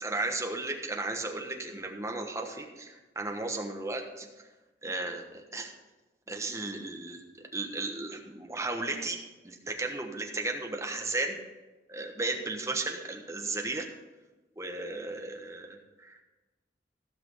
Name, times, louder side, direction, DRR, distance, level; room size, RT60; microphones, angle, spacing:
voice 1, 0.0-4.3 4.8-5.7 6.3-9.2 9.4-11.4 11.9-13.9 14.6-16.2, right 2 dB, 15° right, 2 dB, 1.2 m, -35 dB
15.5 x 5.9 x 5.6 m, 1.2 s
head